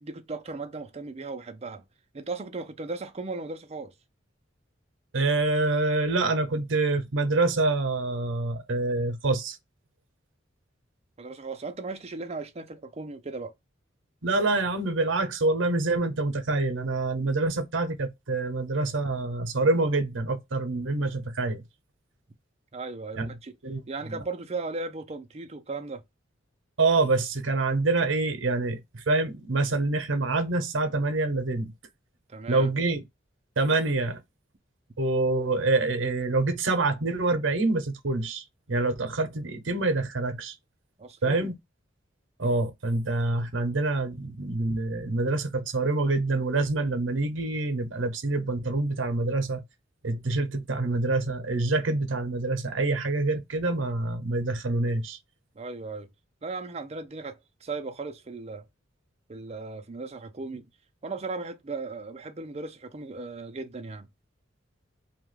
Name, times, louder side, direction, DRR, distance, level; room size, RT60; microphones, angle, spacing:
voice 1, 0.0-1.8 2.1-3.9 11.2-13.5 22.7-23.5 23.9-26.0 32.3-32.7 41.0-41.5 55.6-56.1 56.4-58.6 59.3-60.7 61.0-64.1, right 3 dB, 35° right, 0.5 m, -37 dB
voice 2, 5.1-9.6 14.2-21.6 23.2-23.3 23.6-24.2 26.8-31.7 32.5-33.0 33.6-34.2 35.0-40.5 41.2-41.5 42.4-49.6 50.0-55.2, right 2 dB, 85° right, 0.7 m, -26 dB
2.8 x 2.3 x 3.1 m
head